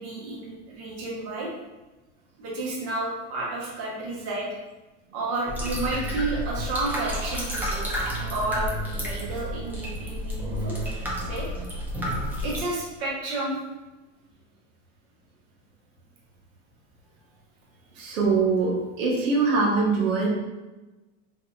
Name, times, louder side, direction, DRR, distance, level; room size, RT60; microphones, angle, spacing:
voice 1, 0.0-1.5 2.4-4.6 5.1-7.9 8.3-10.8 11.2-11.5 12.4-13.6, right 2 dB, 40° right, -4 dB, 1.1 m, -31 dB
sound 1, 5.5-12.6, equal, 5° right, 0.4 m, -30 dB
voice 2, 18.0-20.3, right 4 dB, 90° right, -3 dB, 0.9 m, -23 dB
3.4 x 2.7 x 2.3 m, 1.1 s
supercardioid pair, 130°, 37 cm